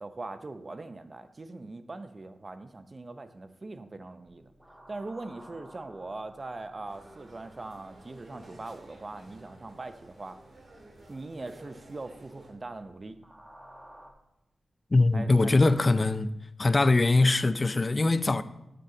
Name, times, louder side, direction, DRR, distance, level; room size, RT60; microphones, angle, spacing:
voice 1, 0.0-4.5 4.9-10.4 11.1-13.1 15.1-15.8, right 2 dB, 40° right, 0.7 m, -41 dB
sound 1, 4.3-14.1, right 1 dB, 15° right, 1.2 m, -56 dB
sound 2, 6.8-12.5, right 1 dB, 60° right, 2.1 m, -53 dB
voice 2, 14.9-16.3 16.6-18.4, left 2 dB, 40° left, 0.5 m, -22 dB
8.8 x 6.7 x 3.8 m
cardioid pair, 50°, 0 cm